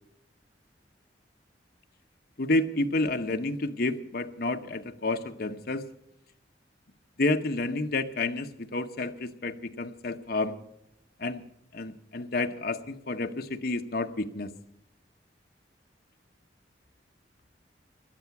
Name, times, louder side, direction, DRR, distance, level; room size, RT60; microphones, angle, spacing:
voice 1, 2.4-5.8 7.2-10.6 11.2-11.4 11.7-14.5, left 2 dB, 55° left, 7 dB, 0.9 m, -30 dB
17.5 x 11.5 x 5.9 m, 0.82 s
head